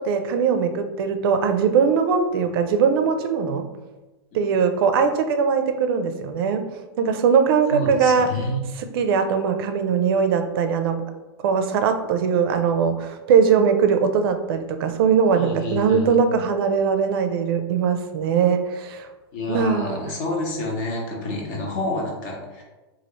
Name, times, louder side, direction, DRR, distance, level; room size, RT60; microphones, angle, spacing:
voice 1, 0.0-3.7 4.3-6.6 7.0-8.3 8.8-11.0 11.4-19.1 19.5-20.0, right 6 dB, 60° right, 8 dB, 0.4 m, -21 dB
voice 2, 7.7-8.6 15.3-16.1 19.3-22.6, left 1 dB, 50° left, -1 dB, 1.0 m, -28 dB
3.0 x 2.4 x 3.0 m, 1.1 s
supercardioid pair, 145°, 14 cm